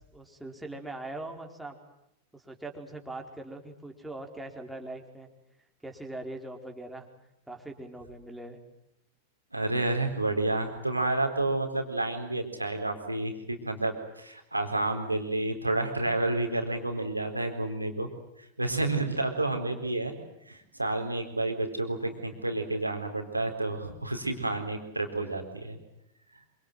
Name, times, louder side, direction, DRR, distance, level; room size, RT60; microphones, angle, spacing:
voice 1, 0.1-1.8 2.3-5.3 5.8-7.1 7.5-8.6, right 2 dB, 5° right, 2 dB, 4.5 m, -41 dB
voice 2, 9.5-18.1 18.4-20.1 20.5-25.8 26.3-26.4, right 2 dB, 85° right, 5 dB, 4.2 m, -30 dB
26.5 x 26.0 x 7.9 m, 0.82 s
figure-of-eight pair, 90°, 0 cm